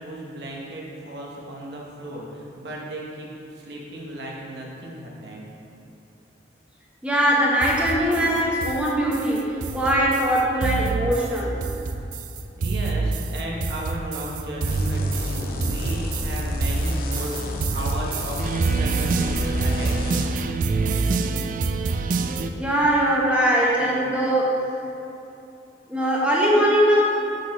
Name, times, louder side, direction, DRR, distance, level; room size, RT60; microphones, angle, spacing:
voice 1, 0.0-5.4 12.6-20.1, right 1 dB, 70° right, -2 dB, 0.9 m, -35 dB
voice 2, 7.0-11.6 22.6-24.6 25.9-27.0, equal, 5° right, -5 dB, 0.9 m, -21 dB
sound 1, 7.6-22.5, right 4 dB, 45° right, 0.3 m, -27 dB
sound 2, 14.7-20.3, left 1 dB, 50° left, 0.5 m, -30 dB
6.6 x 4.2 x 5.3 m, 2.7 s
head